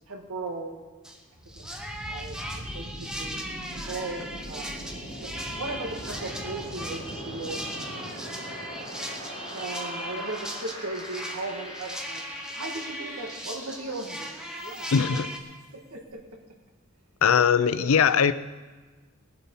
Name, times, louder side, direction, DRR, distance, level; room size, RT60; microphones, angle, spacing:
voice 1, 0.1-0.8 1.5-1.6 2.1-3.4 3.7-4.7 5.2-8.1 9.5-12.2 12.5-14.3 14.6-15.2 15.7-16.2 17.9-18.0, right 2 dB, 80° right, 2 dB, 1.8 m, -37 dB
sound 1, 1.0-1.2 1.5-15.4, equal, 5° right, 0.9 m, -38 dB
sound 2, 1.3-15.1, equal, 20° left, 4.8 m, -41 dB
voice 2, 14.9-15.3 17.2-18.3, left 7 dB, 70° left, 14 dB, 0.5 m, -20 dB
19.5 x 7.8 x 5.4 m, 1.3 s
head